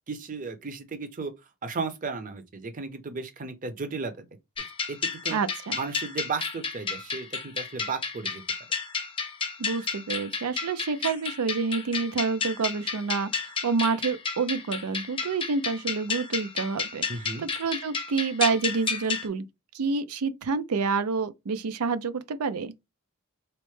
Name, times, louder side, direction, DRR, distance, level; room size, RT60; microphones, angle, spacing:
voice 1, 0.1-1.3 1.6-4.3 4.9-5.4 5.8-8.4 17.1-17.4, right 4 dB, 40° right, 0.6 m, -34 dB
sound 1, 4.6-19.3, left 5 dB, 25° left, 0.6 m, -32 dB
voice 2, 5.3-5.8 9.6-19.4 19.7-22.7, right 4 dB, 90° right, 0.5 m, -28 dB
4.3 x 2.1 x 3.1 m
head